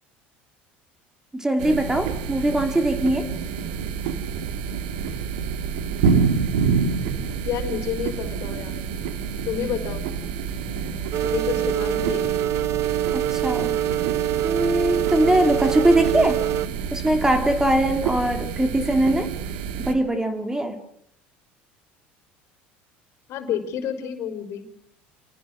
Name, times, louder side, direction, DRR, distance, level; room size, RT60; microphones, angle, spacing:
voice 1, 1.3-3.3 13.1-13.8 14.4-16.4 16.9-19.3 19.8-20.8, right 1 dB, 10° right, 6 dB, 3.0 m, -21 dB
sound 1, 1.6-19.9, right 6 dB, 80° right, 2.4 m, -28 dB
voice 2, 7.4-8.8 9.4-10.1 11.2-12.4 23.3-24.6, left 8 dB, 60° left, 7 dB, 4.4 m, -29 dB
sound 2, 11.1-16.7, right 14 dB, 60° right, 1.1 m, -25 dB
29.0 x 18.5 x 6.4 m, 0.71 s
supercardioid pair, 90°, 5 cm